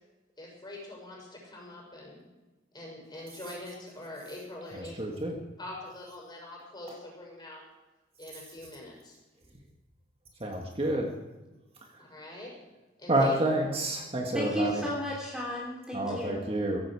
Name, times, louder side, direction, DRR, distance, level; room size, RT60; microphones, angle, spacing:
voice 1, 0.4-2.2 2.7-5.0 5.6-7.6 8.2-9.1 12.0-12.5 13.0-13.3 16.0-16.1, left 1 dB, 25° left, -2 dB, 6.3 m, -43 dB
voice 2, 4.7-5.4 6.9-7.0 10.4-11.1 11.9-12.3 13.1-14.8 15.9-16.8, right 1 dB, 30° right, 1 dB, 1.8 m, -29 dB
voice 3, 14.3-16.4, equal, 5° right, -4 dB, 3.0 m, -34 dB
16.5 x 15.5 x 4.9 m, 1.1 s
head